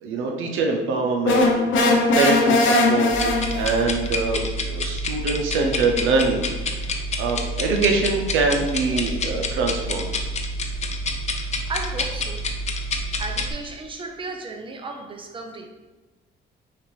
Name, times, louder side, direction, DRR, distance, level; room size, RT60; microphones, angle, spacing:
voice 1, 0.0-3.1 3.5-6.4 7.2-10.1, right 3 dB, 85° right, 2 dB, 0.7 m, -24 dB
sound 1, 1.3-3.9, left 2 dB, 75° left, 0.7 m, -19 dB
sound 2, 3.1-13.5, left 1 dB, 35° left, 0.6 m, -28 dB
voice 2, 11.7-12.4 13.2-15.7, right 3 dB, 25° right, 3 dB, 0.6 m, -34 dB
5.8 x 2.6 x 3.2 m, 1.2 s
cardioid pair, 90°, 20 cm